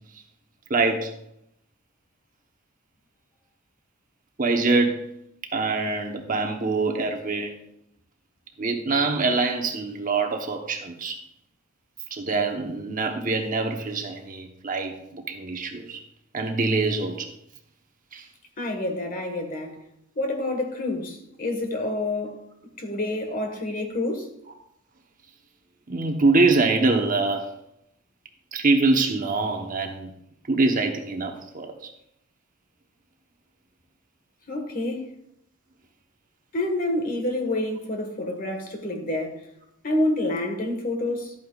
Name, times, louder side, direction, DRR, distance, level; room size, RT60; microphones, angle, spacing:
voice 1, 0.7-1.1 4.4-5.1 5.5-7.5 8.6-11.2 12.1-16.0 16.3-17.3 18.1-18.2 25.9-27.5 28.5-30.1 30.5-31.9, right 3 dB, 45° right, 1.0 m, -24 dB
voice 2, 18.6-19.8 20.1-22.4 22.8-24.3 34.5-35.1 36.5-39.4 39.8-41.3, left 1 dB, 45° left, 1.5 m, -28 dB
12.5 x 8.7 x 2.4 m
head